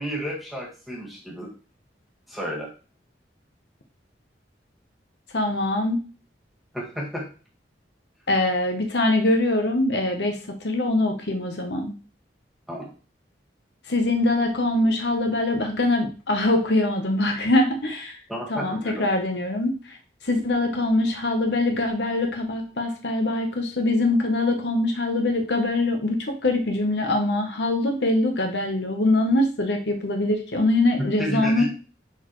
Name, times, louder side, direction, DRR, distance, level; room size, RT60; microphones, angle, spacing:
voice 1, 0.0-1.5 2.3-2.7 6.7-7.3 12.7-12.9 18.3-19.1 31.2-31.6, equal, ahead, -4 dB, 2.1 m, -31 dB
voice 2, 5.3-6.0 8.3-11.9 13.9-18.2 18.5-20.0 20.2-31.6, left 2 dB, 60° left, 4 dB, 1.0 m, -23 dB
11.0 x 4.1 x 3.1 m, 0.37 s
head